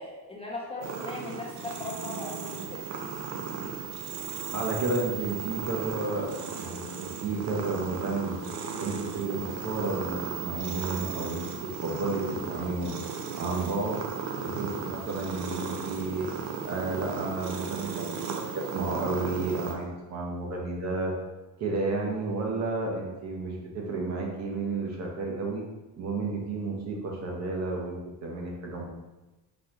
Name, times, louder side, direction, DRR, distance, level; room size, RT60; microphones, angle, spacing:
voice 1, 0.0-2.8, left 2 dB, 15° left, -4 dB, 0.6 m, -38 dB
sound 1, 0.8-19.8, right 6 dB, 90° right, 0.7 m, -36 dB
voice 2, 4.5-6.3 6.6-8.4 8.8-13.0 13.4-14.0 14.3-16.3 16.6-21.1 21.6-25.6 26.0-28.8, right 3 dB, 45° right, -1 dB, 0.9 m, -32 dB
3.9 x 3.7 x 2.9 m, 1.1 s
cardioid pair, 165°, 37 cm